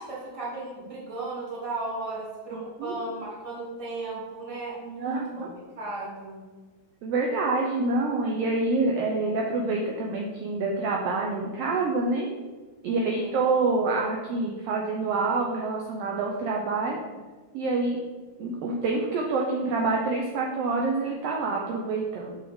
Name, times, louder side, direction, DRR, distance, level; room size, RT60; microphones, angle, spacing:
voice 1, 0.0-5.5 5.7-6.5 12.8-13.3, right 2 dB, 15° right, -6 dB, 1.3 m, -35 dB
voice 2, 2.5-2.9 5.0-5.5 7.0-12.3 12.8-17.0 17.5-18.0 18.4-22.4, right 3 dB, 80° right, 0 dB, 1.4 m, -27 dB
6.2 x 5.8 x 3.6 m, 1.3 s
omnidirectional pair, 3.4 m